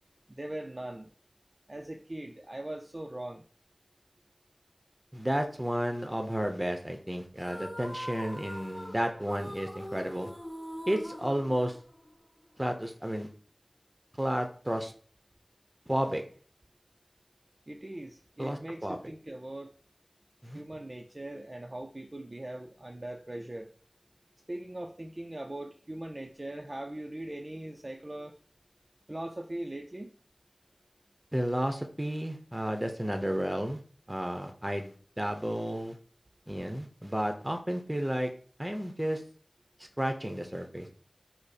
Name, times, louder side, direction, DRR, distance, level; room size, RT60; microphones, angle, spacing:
voice 1, 0.3-1.1 1.7-3.5 17.7-19.7 20.5-23.7 24.5-28.4 29.1-30.1, right 1 dB, 45° right, 2 dB, 0.4 m, -40 dB
voice 2, 5.1-10.3 10.9-11.8 12.6-13.3 14.2-14.9 15.9-16.2 18.4-19.0 20.4-20.6 31.3-33.8 34.1-36.0 36.5-38.3 38.6-39.2 40.0-40.9, equal, 20° right, 5 dB, 0.7 m, -32 dB
sound 1, 7.4-12.2, equal, 30° left, 1.9 m, -42 dB
5.2 x 2.0 x 4.2 m, 0.43 s
wide cardioid pair, 50°, 0 cm